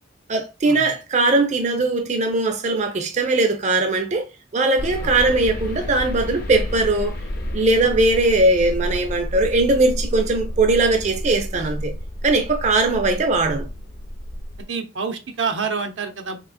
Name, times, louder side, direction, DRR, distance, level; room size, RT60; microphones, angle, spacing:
voice 1, 0.3-4.2 4.5-7.1 7.5-12.0 12.2-13.7, right 2 dB, 40° right, 0.4 m, -20 dB
sound 1, 4.8-14.6, equal, 55° left, 0.6 m, -30 dB
voice 2, 14.7-16.4, right 5 dB, 80° right, 0.7 m, -27 dB
3.7 x 2.7 x 2.5 m
head